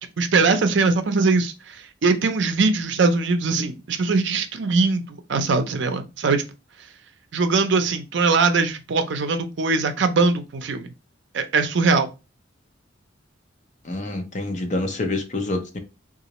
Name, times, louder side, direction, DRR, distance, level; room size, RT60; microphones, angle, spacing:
voice 1, 0.2-1.5 2.0-5.0 5.3-6.4 7.3-10.9 11.3-12.1, right 4 dB, 65° right, 0.5 m, -21 dB
voice 2, 13.8-15.8, left 2 dB, 40° left, 0.6 m, -27 dB
3.8 x 2.4 x 2.9 m
head